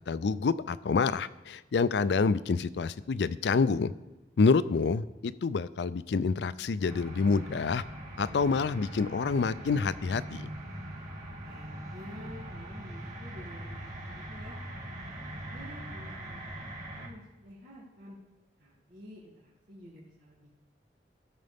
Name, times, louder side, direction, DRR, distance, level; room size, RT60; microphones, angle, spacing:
voice 1, 0.1-3.9 4.4-7.8 8.2-10.5, left 4 dB, 70° left, 16 dB, 0.4 m, -27 dB
sound 1, 6.8-17.1, right 1 dB, 40° right, 2.2 m, -42 dB
voice 2, 11.4-14.6 15.1-16.7 16.9-18.2 18.6-20.6, equal, 80° right, -9 dB, 2.8 m, -50 dB
17.0 x 6.6 x 3.5 m, 1.1 s
head